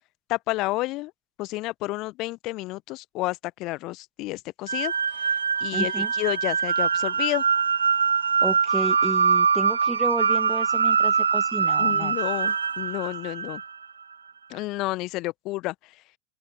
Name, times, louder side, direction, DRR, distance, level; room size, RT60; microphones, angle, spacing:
voice 1, 0.3-1.1 1.4-4.9 5.2-5.3 5.6-7.4 11.6-13.6 14.5-16.0, left 20 dB, 40° left, 1.1 m, -30 dB
sound 1, 4.7-13.8, right 6 dB, 70° right, 0.6 m, -23 dB
voice 2, 5.7-6.1 8.4-12.2, right 2 dB, 5° right, 2.2 m, -32 dB
open air
figure-of-eight pair, 90°, 0 cm